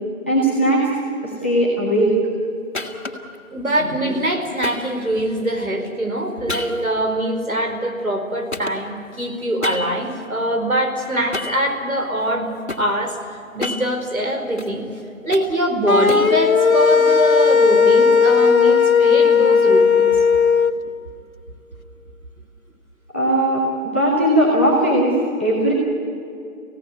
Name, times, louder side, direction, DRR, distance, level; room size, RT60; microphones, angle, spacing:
voice 1, 0.3-0.9 1.2-2.2 23.1-25.7, right 1 dB, 10° left, -9 dB, 1.5 m, -18 dB
sound 1, 2.7-3.4 4.6-5.6 6.5-8.2 8.5-10.2 11.3-11.7 12.3-12.9 13.4-14.7 15.1-16.4, left 2 dB, 50° left, 2.5 m, -31 dB
voice 2, 3.5-12.5 12.8-13.2 13.5-14.9 15.2-20.2, right 1 dB, 85° right, 3 dB, 4.7 m, -23 dB
sound 2, 15.9-20.7, left 6 dB, 85° left, 1.2 m, -15 dB
25.5 x 17.0 x 9.4 m, 2.6 s
figure-of-eight pair, 170°, 41 cm